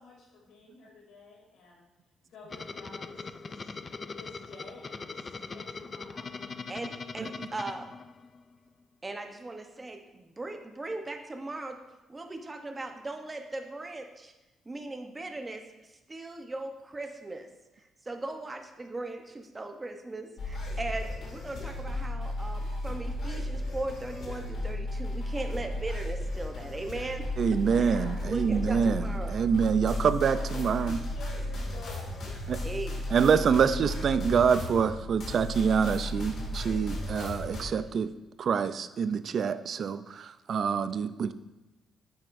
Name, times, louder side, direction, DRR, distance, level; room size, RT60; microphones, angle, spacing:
voice 1, 0.0-1.9 2.3-3.7 4.1-6.6 27.6-28.3 28.6-29.0 30.1-32.2, left 3 dB, 80° left, -2 dB, 2.6 m, -50 dB
sound 1, 2.5-8.5, left 4 dB, 35° left, 0.4 m, -41 dB
voice 2, 6.7-7.9 9.0-11.8 12.1-14.3 14.7-15.6 16.1-17.5 18.0-27.3 27.8-29.5 32.6-33.0, right 2 dB, 20° right, 4 dB, 0.8 m, -38 dB
sound 2, 20.4-37.6, left 1 dB, 60° left, 2.2 m, -34 dB
voice 3, 27.4-31.0 32.5-32.6 33.1-38.1 38.4-41.3, right 6 dB, 55° right, 13 dB, 0.4 m, -26 dB
9.2 x 7.6 x 2.6 m, 1.0 s
cardioid pair, 90°, 0 cm